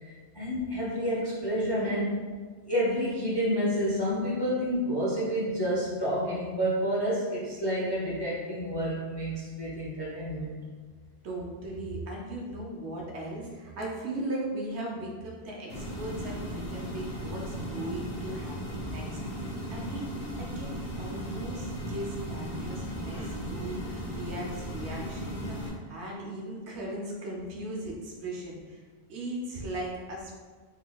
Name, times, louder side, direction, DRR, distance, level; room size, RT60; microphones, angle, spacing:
voice 1, 0.0-2.2 2.7-10.5 23.1-23.3, equal, 35° left, -6 dB, 0.4 m, -29 dB
voice 2, 11.2-19.1 19.4-20.1 20.4-28.8 29.1-30.4, right 1 dB, 75° right, -2 dB, 1.0 m, -38 dB
sound 1, 15.7-25.7, equal, 65° left, 1.0 m, -36 dB
3.8 x 3.2 x 2.3 m, 1.5 s
omnidirectional pair, 1.2 m